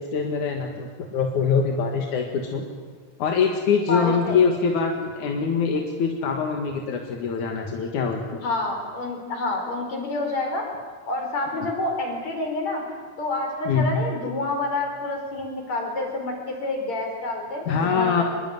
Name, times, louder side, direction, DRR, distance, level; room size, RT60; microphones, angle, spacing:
voice 1, 0.0-2.7 3.2-8.5 11.6-11.7 13.7-14.0 17.7-18.2, left 5 dB, 90° left, 2 dB, 3.3 m, -24 dB
voice 2, 3.9-4.4 8.4-10.7 11.1-18.2, left 2 dB, 65° left, 2 dB, 6.5 m, -28 dB
25.0 x 22.5 x 9.4 m, 1.5 s
omnidirectional pair, 3.3 m